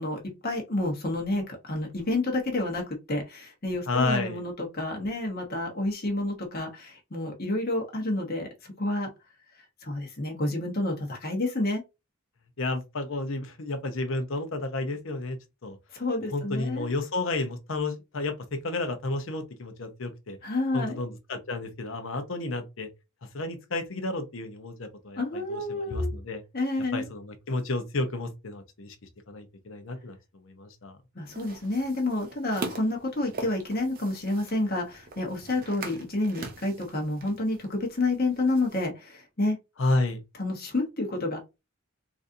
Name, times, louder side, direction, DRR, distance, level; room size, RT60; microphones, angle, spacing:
voice 1, 0.0-2.8 3.1-9.1 9.8-11.8 15.9-16.9 20.4-21.0 25.2-26.1 26.5-27.1 31.1-39.6 40.4-41.4, left 2 dB, 45° left, 1.0 m, -29 dB
voice 2, 3.9-4.4 12.6-15.4 15.6-15.8 16.3-18.3 18.6-20.4 20.7-22.9 23.3-25.2 25.5-26.4 26.9-28.9 29.3-30.2 30.4-31.0 39.8-40.2, left 2 dB, 65° left, 0.7 m, -31 dB
sound 1, 31.2-38.9, right 3 dB, 40° right, 0.6 m, -42 dB
3.9 x 2.5 x 2.6 m
head